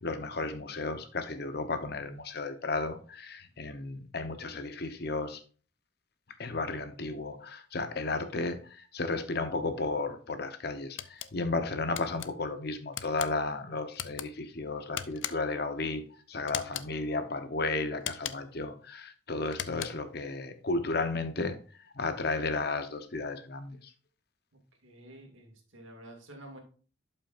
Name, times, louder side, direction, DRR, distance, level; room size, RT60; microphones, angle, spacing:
voice 1, 0.0-5.4 6.4-21.6 21.9-23.9, left 3 dB, 55° left, 9 dB, 0.9 m, -33 dB
sound 1, 11.0-11.3 12.0-12.3 12.9-13.3 13.9-14.3 15.0-15.6 16.5-16.9 18.0-18.6 19.5-20.1, left 11 dB, 70° left, 0.5 m, -38 dB
voice 2, 24.8-26.6, right 1 dB, 85° right, 2 dB, 2.1 m, -50 dB
11.5 x 5.6 x 2.5 m, 0.39 s
head